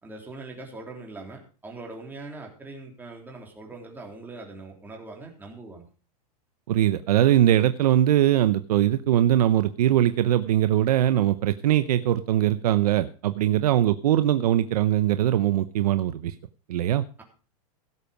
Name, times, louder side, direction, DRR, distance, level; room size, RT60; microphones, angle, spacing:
voice 1, 0.0-5.9, right 3 dB, 10° right, 1 dB, 3.3 m, -41 dB
voice 2, 6.7-16.3 16.7-17.0, right 12 dB, 85° right, 12 dB, 0.7 m, -21 dB
16.5 x 7.2 x 5.2 m, 0.37 s
supercardioid pair, 140°, 19 cm